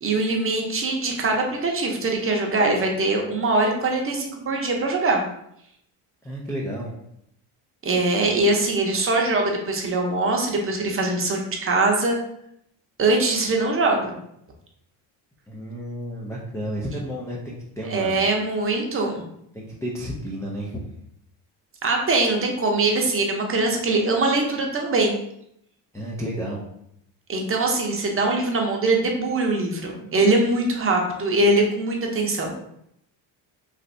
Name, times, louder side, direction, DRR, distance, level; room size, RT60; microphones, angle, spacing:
voice 1, 0.0-5.2 7.8-12.2 13.0-14.2 17.9-19.2 21.8-25.1 27.3-32.5, right 2 dB, 30° right, 1 dB, 0.7 m, -22 dB
voice 2, 6.2-6.9 15.5-18.3 19.5-20.8 25.9-26.6, equal, 5° left, -4 dB, 0.3 m, -32 dB
3.2 x 2.6 x 2.6 m, 0.74 s
supercardioid pair, 100°, 47 cm